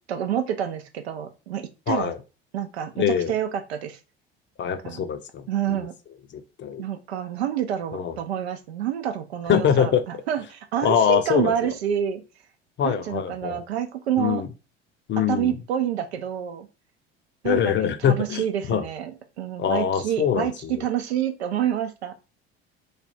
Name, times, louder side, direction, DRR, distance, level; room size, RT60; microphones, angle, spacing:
voice 1, 0.1-2.1 2.5-4.0 4.8-5.0 5.5-5.9 6.8-12.2 12.8-14.4 15.3-16.7 17.4-19.1 19.4-22.1, right 10 dB, 85° right, 8 dB, 0.6 m, -28 dB
voice 2, 1.9-2.2 3.0-3.3 4.6-5.8 6.3-6.8 7.9-8.2 9.5-10.0 10.8-11.7 12.8-13.6 14.2-14.5 15.1-15.5 17.4-18.8 19.6-20.8, left 8 dB, 35° left, 10 dB, 0.6 m, -24 dB
3.3 x 2.2 x 4.0 m, 0.30 s
hypercardioid pair, 65°, 31 cm